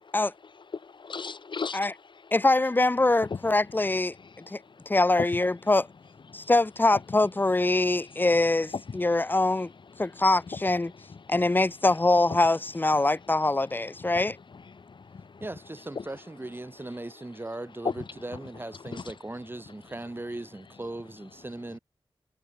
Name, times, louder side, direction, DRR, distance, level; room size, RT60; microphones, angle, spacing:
voice 1, 0.8-1.9 3.2-3.8 4.4-4.5 5.2-5.3 6.2-6.4 6.9-7.1 8.3-8.4 8.7-9.2 9.9-10.6 11.1-11.4 12.2-12.4 12.9-13.0 14.0-15.6 15.9-16.0 16.5-16.6 17.8-18.5 18.8-19.2, left 5 dB, 55° left, 0.9 m, -37 dB
voice 2, 2.3-4.6 4.9-5.9 6.3-9.7 10.0-10.9 11.3-14.4, left 2 dB, 20° left, 0.5 m, -24 dB
voice 3, 15.4-21.8, right 2 dB, 20° right, 3.7 m, -38 dB
wide cardioid pair, 95°, 10 cm